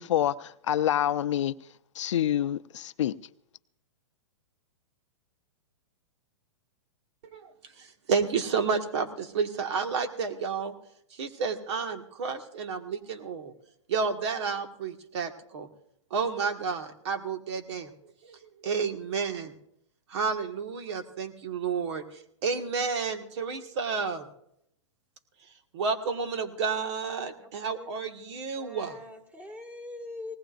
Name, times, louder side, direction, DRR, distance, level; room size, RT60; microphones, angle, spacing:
voice 1, 0.0-1.6 2.0-3.1, left 11 dB, 75° left, 0.6 m, -27 dB
voice 2, 7.2-10.7 11.1-13.5 13.9-15.7 16.1-17.9 18.2-19.5 20.1-24.3 25.4-29.0, right 5 dB, 60° right, 1.8 m, -31 dB
voice 3, 27.4-27.9 28.2-30.4, left 2 dB, 10° right, 1.9 m, -43 dB
19.5 x 18.5 x 2.6 m
hypercardioid pair, 130°, 16 cm